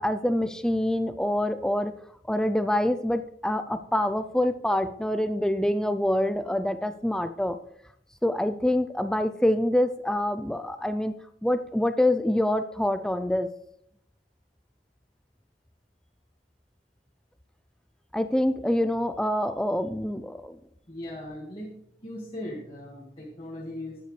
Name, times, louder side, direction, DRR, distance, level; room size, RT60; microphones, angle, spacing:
voice 1, 0.0-1.9 2.3-7.6 8.2-11.1 11.4-13.5 18.1-20.6, left 1 dB, 5° left, 10 dB, 0.3 m, -26 dB
voice 2, 20.9-21.7 22.0-24.0, left 1 dB, 30° left, -4 dB, 1.8 m, -38 dB
11.0 x 9.6 x 3.2 m, 0.71 s
head